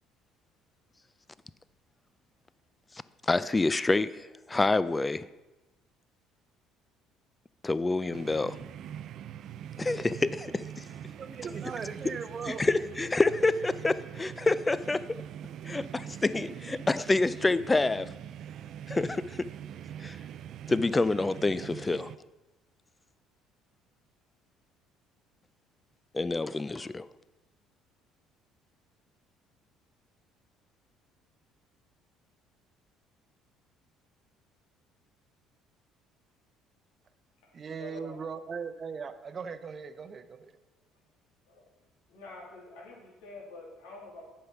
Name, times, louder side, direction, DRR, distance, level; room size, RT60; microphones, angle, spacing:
voice 1, 3.3-5.3 7.6-8.6 9.8-10.9 12.5-15.2 15.6-18.1 18.9-19.5 20.0-20.2 20.7-22.1 26.1-27.1, left 3 dB, 20° left, 0.4 m, -27 dB
sound 1, 8.1-22.2, right 10 dB, 60° right, 0.4 m, -43 dB
voice 2, 11.2-12.8 37.5-40.5, right 5 dB, 40° right, 0.7 m, -39 dB
voice 3, 37.8-38.2 41.5-41.7 42.1-44.2, left 3 dB, 90° left, 2.5 m, -46 dB
8.2 x 5.6 x 5.9 m
supercardioid pair, 85°, 0 cm